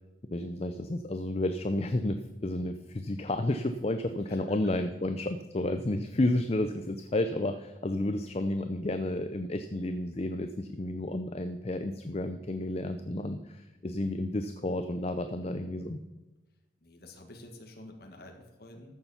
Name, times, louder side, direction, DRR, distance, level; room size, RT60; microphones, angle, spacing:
voice 1, 0.3-16.0, left 1 dB, 30° left, 9 dB, 0.5 m, -31 dB
voice 2, 4.2-4.9 15.4-15.8 16.8-19.0, left 1 dB, 50° left, 2 dB, 1.7 m, -50 dB
13.5 x 7.0 x 5.7 m, 1.1 s
head